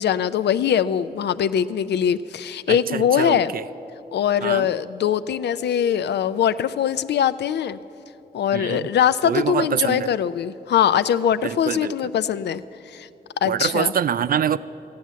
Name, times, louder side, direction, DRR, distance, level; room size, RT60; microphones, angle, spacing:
voice 1, 0.0-3.5 4.1-7.8 8.3-12.6 12.9-13.1 13.4-13.9, left 9 dB, 85° left, 14 dB, 0.4 m, -22 dB
voice 2, 2.7-3.6 4.4-4.7 8.5-8.9 9.2-10.1 11.4-11.9 13.4-14.6, right 8 dB, 60° right, 15 dB, 0.4 m, -25 dB
14.0 x 9.5 x 7.4 m, 2.9 s
cardioid pair, 55°, 17 cm